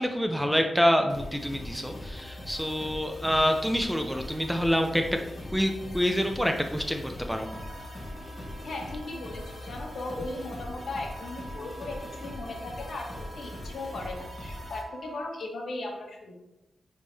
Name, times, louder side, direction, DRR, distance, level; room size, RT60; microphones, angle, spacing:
voice 1, 0.0-5.2 5.5-7.5, equal, ahead, 4 dB, 0.4 m, -26 dB
sound 1, 1.1-14.8, left 1 dB, 35° left, 1.2 m, -41 dB
Wind instrument woodwind instrument, 7.4-15.3, right 2 dB, 25° right, 1.3 m, -47 dB
voice 2, 8.6-16.3, left 2 dB, 65° left, 1 dB, 1.3 m, -37 dB
9.0 x 3.6 x 3.3 m, 0.96 s
wide cardioid pair, 150°, 0 cm